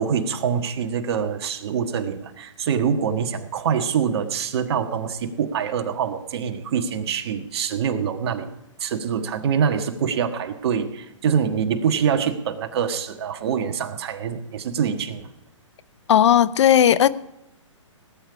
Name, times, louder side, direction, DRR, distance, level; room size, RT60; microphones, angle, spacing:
voice 1, 0.0-8.5 8.8-15.3, right 7 dB, 55° right, 6 dB, 1.6 m, -25 dB
voice 2, 16.1-17.1, left 10 dB, 65° left, 17 dB, 0.7 m, -15 dB
18.0 x 8.6 x 4.9 m, 0.91 s
hypercardioid pair, 140°, 16 cm